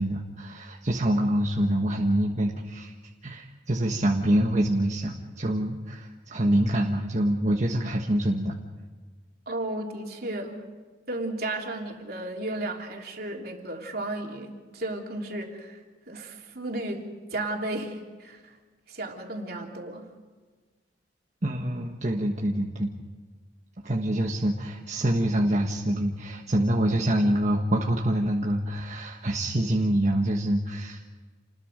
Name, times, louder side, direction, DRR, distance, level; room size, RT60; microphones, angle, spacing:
voice 1, 0.0-2.9 3.2-8.5 21.4-22.9 23.8-31.1, right 1 dB, 40° right, 0 dB, 1.5 m, -26 dB
voice 2, 9.5-10.7 11.1-15.8 16.1-18.5 18.9-20.1, right 2 dB, 60° right, 1 dB, 3.3 m, -34 dB
28.5 x 20.5 x 5.3 m, 1.4 s
head